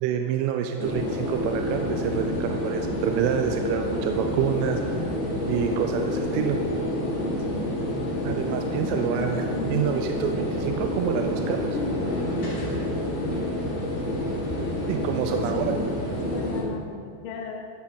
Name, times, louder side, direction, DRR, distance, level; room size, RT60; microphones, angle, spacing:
voice 1, 0.0-4.8 5.5-6.6 8.2-11.8 14.9-15.8 16.1-16.2, right 9 dB, 85° right, 5 dB, 3.0 m, -27 dB
sound 1, 0.8-16.6, left 1 dB, 40° left, 2.5 m, -28 dB
voice 2, 8.9-9.3 9.6-9.8 14.9-15.7 16.2-17.6, left 5 dB, 65° left, 0 dB, 2.7 m, -36 dB
13.5 x 7.8 x 4.5 m, 2.3 s
omnidirectional pair, 5.7 m